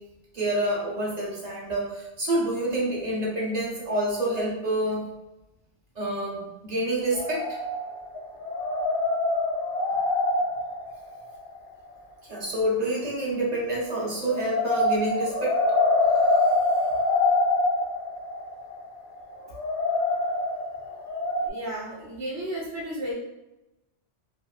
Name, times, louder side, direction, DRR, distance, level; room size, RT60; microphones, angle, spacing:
voice 1, 0.3-5.1 6.0-7.4 12.3-15.5, right 1 dB, 40° right, -5 dB, 0.9 m, -27 dB
sound 1, 7.1-8.1 8.4-11.6 14.3-21.5, left 2 dB, 75° left, 0.9 m, -25 dB
voice 2, 21.4-23.1, right 1 dB, 65° right, -7 dB, 0.9 m, -33 dB
2.9 x 2.6 x 2.4 m, 0.96 s
omnidirectional pair, 1.2 m